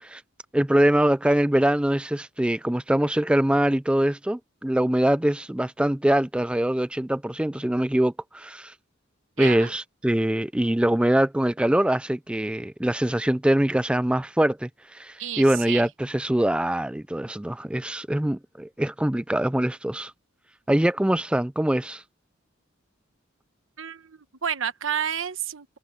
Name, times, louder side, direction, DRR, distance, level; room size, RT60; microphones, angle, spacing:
voice 1, 0.5-8.7 9.4-20.1 20.7-22.0, right 1 dB, 5° right, 0.3 m, -23 dB
voice 2, 9.4-9.7 15.2-15.9 23.8-25.8, right 8 dB, 75° right, 1.2 m, -30 dB
head